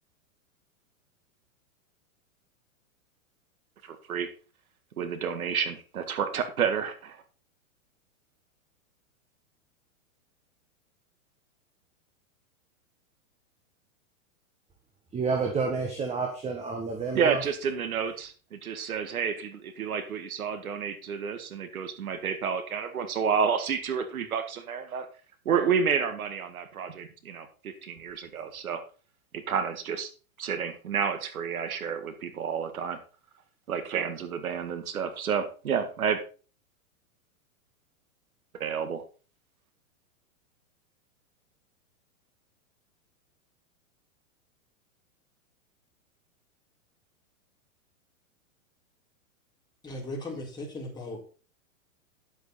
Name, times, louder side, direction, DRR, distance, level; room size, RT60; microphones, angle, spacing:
voice 1, 3.8-4.3 5.0-7.2 17.1-25.1 25.5-28.8 29.3-30.1 30.4-33.0 33.7-36.2 38.5-39.0, right 6 dB, 90° right, 9 dB, 1.9 m, -30 dB
voice 2, 15.1-17.4, right 4 dB, 15° right, 3 dB, 1.6 m, -29 dB
voice 3, 49.8-51.2, left 1 dB, 10° left, -3 dB, 4.4 m, -37 dB
11.0 x 8.2 x 4.2 m, 0.37 s
hypercardioid pair, 135°, 42 cm